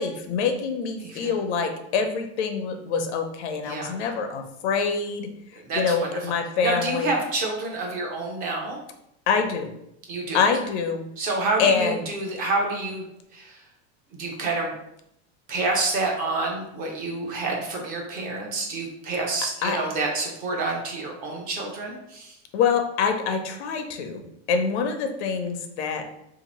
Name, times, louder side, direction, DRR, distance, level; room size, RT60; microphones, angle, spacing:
voice 1, 0.0-7.1 9.3-9.7 10.3-11.1 11.6-12.0 19.6-19.8 22.5-26.0, left 5 dB, 80° left, 5 dB, 0.7 m, -25 dB
voice 2, 1.0-1.3 3.6-3.9 5.6-6.1 6.6-8.8 10.1-10.4 11.2-13.0 13.3-13.6 14.1-14.7 15.5-22.4, right 2 dB, 25° right, 0 dB, 0.6 m, -28 dB
2.8 x 2.5 x 4.1 m, 0.78 s
supercardioid pair, 170°, 33 cm